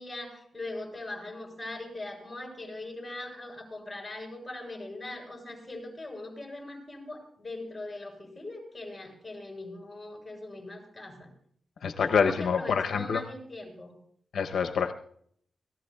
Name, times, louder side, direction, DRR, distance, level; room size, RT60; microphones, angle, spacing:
voice 1, 0.0-11.3 12.0-14.0, left 2 dB, 10° left, 0 dB, 7.2 m, -41 dB
voice 2, 11.8-13.2 14.3-14.9, left 6 dB, 80° left, 6 dB, 0.8 m, -26 dB
26.5 x 18.0 x 2.4 m, 0.64 s
wide cardioid pair, 125°, 0 cm